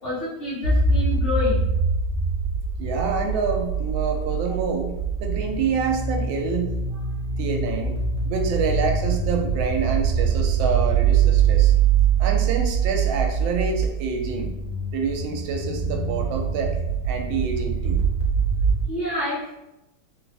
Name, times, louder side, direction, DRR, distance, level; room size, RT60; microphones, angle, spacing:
voice 1, 0.0-1.7 18.9-19.5, left 1 dB, 50° left, -8 dB, 0.9 m, -28 dB
sound 1, 0.6-18.8, right 6 dB, 70° left, 1.5 m, -23 dB
voice 2, 2.8-6.8 7.4-8.0 8.2-11.7 12.2-14.5 14.9-16.8 17.0-18.1, right 5 dB, 80° right, 4 dB, 1.3 m, -27 dB
3.7 x 2.3 x 3.3 m, 0.93 s
omnidirectional pair, 2.2 m